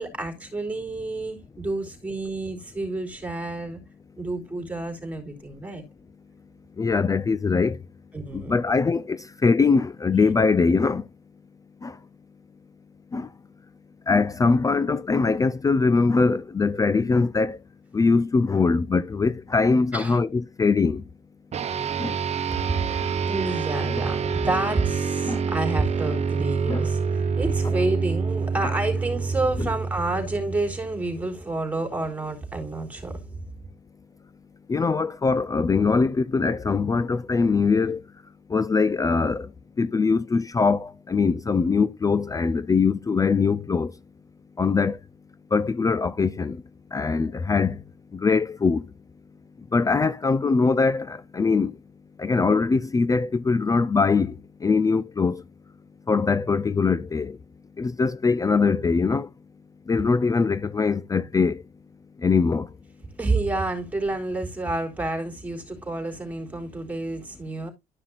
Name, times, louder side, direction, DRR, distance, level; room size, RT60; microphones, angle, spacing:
voice 1, 0.0-3.8 4.2-5.8 8.1-8.6 19.9-20.2 22.5-33.2 63.2-67.7, right 2 dB, 10° right, 3.9 m, -29 dB
voice 2, 6.8-7.8 8.3-11.0 11.8-12.0 13.1-13.3 14.1-17.6 17.9-21.0 22.0-22.2 23.9-24.0 25.3-25.4 26.7-26.9 28.6-28.7 29.6-29.7 34.7-38.0 38.5-39.5 39.8-43.9 44.6-45.0 45.5-46.6 46.9-47.8 48.1-48.8 49.7-51.7 52.2-55.4 56.1-57.4 57.8-59.3 59.9-61.6 62.2-62.7, left 4 dB, 20° left, 0.4 m, -22 dB
sound 1, 21.5-31.2, right 5 dB, 40° right, 1.1 m, -27 dB
13.0 x 5.6 x 2.5 m
cardioid pair, 110°, 17 cm